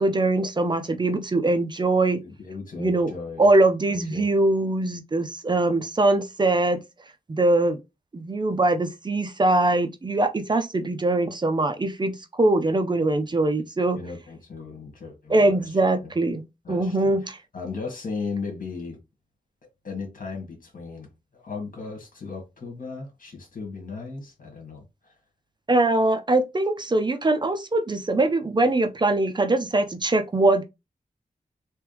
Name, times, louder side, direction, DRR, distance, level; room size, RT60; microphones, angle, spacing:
voice 1, 0.0-2.2 2.8-3.1 3.4-6.8 7.3-7.8 8.1-14.0 15.3-16.4 16.7-17.4 25.7-30.6, right 2 dB, 30° right, 0.5 m, -22 dB
voice 2, 2.2-3.5 4.1-4.3 13.9-16.1 16.6-17.2 17.5-19.0 19.8-25.2, left 4 dB, 65° left, 1.8 m, -36 dB
3.4 x 3.1 x 3.3 m
wide cardioid pair, 110°, 15 cm